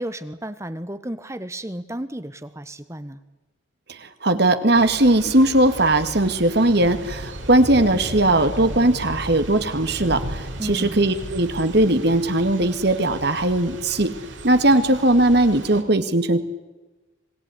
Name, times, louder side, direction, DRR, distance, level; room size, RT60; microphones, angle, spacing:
voice 1, 0.0-3.2 10.6-11.0, right 1 dB, 15° right, 12 dB, 1.3 m, -33 dB
voice 2, 3.9-14.1 14.4-16.4, right 1 dB, 60° right, 9 dB, 2.0 m, -19 dB
Thunder / Rain, 4.7-15.8, right 1 dB, 75° right, 5.1 m, -35 dB
26.5 x 20.0 x 9.8 m, 1.1 s
head